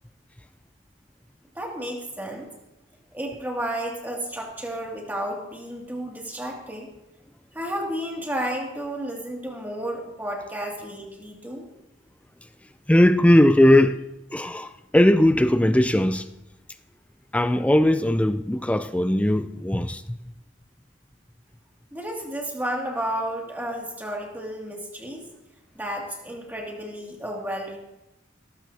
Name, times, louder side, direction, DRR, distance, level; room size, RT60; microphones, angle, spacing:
voice 1, 1.5-2.5 3.1-6.9 7.5-11.6 21.9-25.2 25.7-27.8, right 1 dB, 10° right, 2.3 m, -32 dB
voice 2, 12.9-14.0 14.3-16.3 17.3-20.2, left 1 dB, 5° left, 0.4 m, -19 dB
18.0 x 13.5 x 2.8 m
head